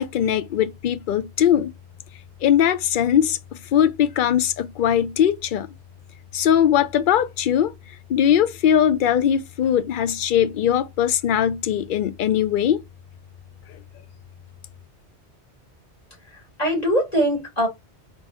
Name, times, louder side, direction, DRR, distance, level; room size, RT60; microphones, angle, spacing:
voice 1, 0.0-1.7 2.4-5.7 6.3-7.7 8.1-12.8, left 9 dB, 60° left, 0.6 m, -20 dB
voice 2, 16.2-17.7, equal, 35° left, 2.3 m, -22 dB
3.9 x 2.9 x 3.9 m
omnidirectional pair, 1.2 m